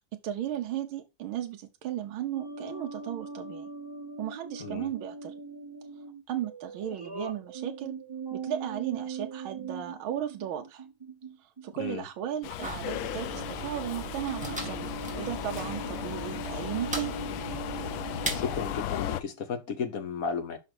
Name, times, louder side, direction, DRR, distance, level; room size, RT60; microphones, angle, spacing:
voice 1, 0.2-3.7 4.2-5.3 6.3-8.0 8.3-10.9 11.4-17.1, right 11 dB, 75° right, 1.6 m, -35 dB
sound 1, 2.3-11.7 12.5-12.8 13.1-18.8, right 4 dB, 35° right, 0.4 m, -41 dB
voice 2, 4.6-4.9 11.8-12.0 18.3-20.6, left 5 dB, 50° left, 1.2 m, -34 dB
Subway metro underground, 12.4-19.2, left 12 dB, 75° left, 1.3 m, -36 dB
sound 2, 12.6-18.7, right 3 dB, 5° right, 1.9 m, -39 dB
5.8 x 5.6 x 6.0 m
omnidirectional pair, 2.4 m